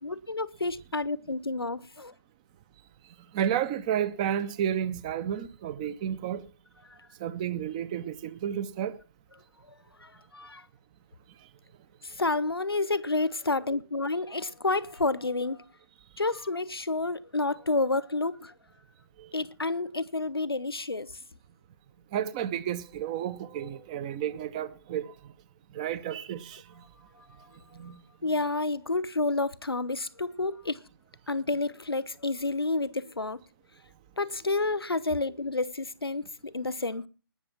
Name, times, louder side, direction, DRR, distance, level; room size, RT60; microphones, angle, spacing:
voice 1, 0.0-2.1 6.9-7.0 10.0-10.7 12.0-15.6 16.2-18.5 19.3-21.1 28.2-30.8 31.3-33.4 34.2-37.1, left 3 dB, 80° left, 0.9 m, -30 dB
voice 2, 3.3-6.4 7.2-9.0 19.2-19.3 22.1-25.1 25.7-26.8 27.7-28.0, right 9 dB, 20° right, 0.6 m, -31 dB
19.5 x 6.8 x 5.8 m
figure-of-eight pair, 140°, 13 cm